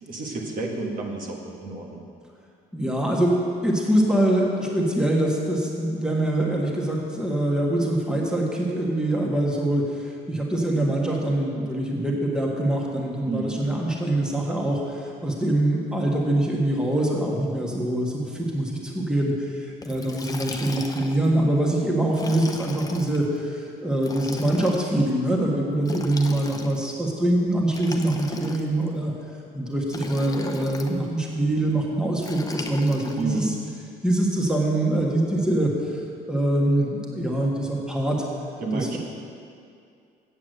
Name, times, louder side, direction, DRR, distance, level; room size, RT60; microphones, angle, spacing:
voice 1, 0.0-2.0 13.3-13.6 33.2-33.5 38.6-39.0, right 3 dB, 55° right, 0 dB, 1.6 m, -30 dB
voice 2, 2.7-3.3 3.6-29.1 29.5-33.5 34.0-36.0 36.3-38.2 38.7-39.0, right 1 dB, 5° right, -2 dB, 1.6 m, -24 dB
Liquid, 19.8-21.3 22.1-23.2 24.0-24.9 25.8-26.9 27.7-28.9 29.9-30.9 32.2-33.2, left 3 dB, 20° left, 0.8 m, -37 dB
8.1 x 7.2 x 7.8 m, 2.4 s
cardioid pair, 110°, 17 cm